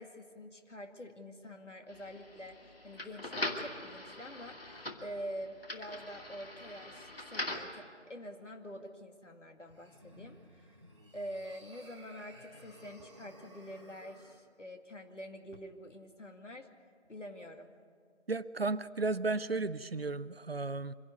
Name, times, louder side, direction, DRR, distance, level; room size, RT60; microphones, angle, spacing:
voice 1, 0.0-2.6 2.8-4.6 5.0-10.4 11.1-16.7 17.1-17.7, equal, 90° left, 5 dB, 2.2 m, -46 dB
sound 1, 1.9-7.8, left 1 dB, 55° left, 2.2 m, -42 dB
sound 2, 9.7-14.4, equal, 25° right, 1.2 m, -57 dB
voice 2, 18.3-21.0, right 3 dB, 55° right, 15 dB, 0.6 m, -34 dB
25.0 x 11.5 x 9.4 m, 2.1 s
figure-of-eight pair, 170°, 35 cm